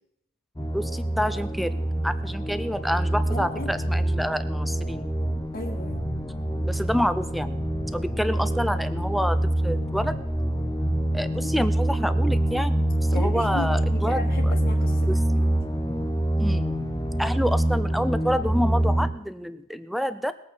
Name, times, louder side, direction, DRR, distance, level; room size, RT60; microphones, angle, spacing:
sound 1, 0.6-19.1, right 1 dB, 15° left, 1.0 m, -25 dB
voice 1, 0.7-5.1 6.7-7.6 7.9-10.1 11.1-14.5 15.1-15.4 16.4-16.7 17.2-20.3, equal, ahead, 12 dB, 0.5 m, -28 dB
voice 2, 3.3-3.7 5.5-6.1 13.1-15.6, left 2 dB, 35° left, -3 dB, 1.4 m, -36 dB
20.5 x 8.6 x 4.4 m, 0.78 s
head